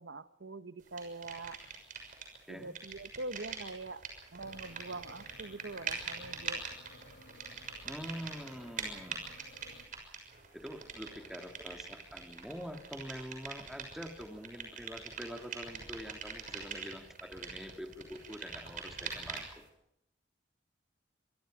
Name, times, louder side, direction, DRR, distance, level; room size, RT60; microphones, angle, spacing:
voice 1, 0.0-1.6 2.5-4.0 4.3-6.6, right 2 dB, 80° right, 12 dB, 1.1 m, -44 dB
sound 1, 1.0-2.4 2.6-19.7, right 5 dB, 45° right, 6.3 m, -44 dB
sound 2, 4.4-9.8, left 2 dB, 80° left, 3.7 m, -57 dB
voice 2, 7.8-9.4 10.5-19.6, equal, ahead, 4 dB, 2.0 m, -45 dB
27.0 x 24.5 x 5.1 m, 0.79 s
head